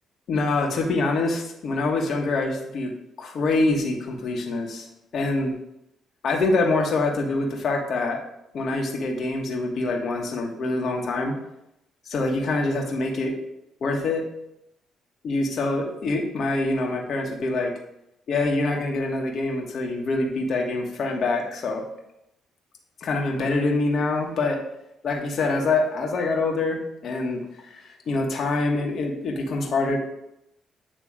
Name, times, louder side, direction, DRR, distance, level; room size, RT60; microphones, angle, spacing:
voice 1, 0.3-2.9 3.2-4.9 5.1-5.5 6.2-8.2 8.5-11.3 12.1-13.3 13.8-14.2 15.2-17.7 18.3-21.8 23.0-24.6 25.0-30.0, left 2 dB, 60° left, 1 dB, 1.5 m, -25 dB
8.8 x 3.3 x 4.9 m, 0.82 s
cardioid pair, 90°, 0 cm